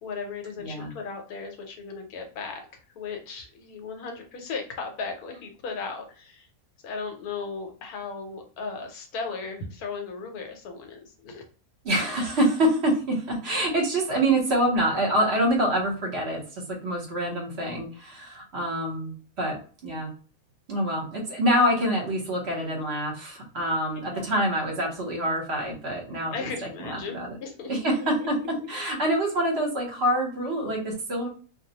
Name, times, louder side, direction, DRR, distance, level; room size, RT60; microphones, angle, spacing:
voice 1, 0.0-6.5 6.8-11.4 23.9-24.4 24.7-24.8 26.3-27.7 28.0-28.3, left 4 dB, 80° left, 4 dB, 1.2 m, -36 dB
voice 2, 0.6-0.9 11.8-20.1 20.7-26.5 26.8-27.3 27.7-31.3, right 1 dB, 50° right, 0 dB, 0.9 m, -26 dB
2.5 x 2.0 x 2.7 m, 0.40 s
omnidirectional pair, 1.6 m